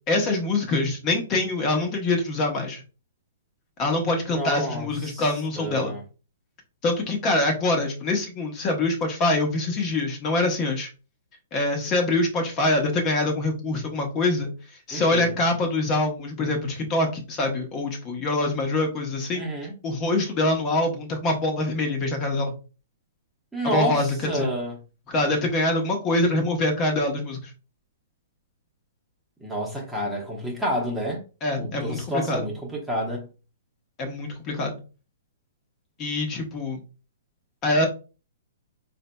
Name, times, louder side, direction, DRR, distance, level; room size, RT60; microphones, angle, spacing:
voice 1, 0.1-2.8 3.8-5.9 6.8-10.9 11.5-14.5 14.9-19.5 19.8-22.5 23.6-24.5 25.1-27.4 31.4-32.5 34.0-34.8 36.0-36.8 37.6-37.9, left 2 dB, 30° left, 0.9 m, -24 dB
voice 2, 4.3-6.0 14.9-15.4 19.3-19.7 23.5-24.8 29.4-31.2 31.6-33.3, equal, 5° right, 0.9 m, -29 dB
4.0 x 2.5 x 2.2 m
hypercardioid pair, 135°, 0 cm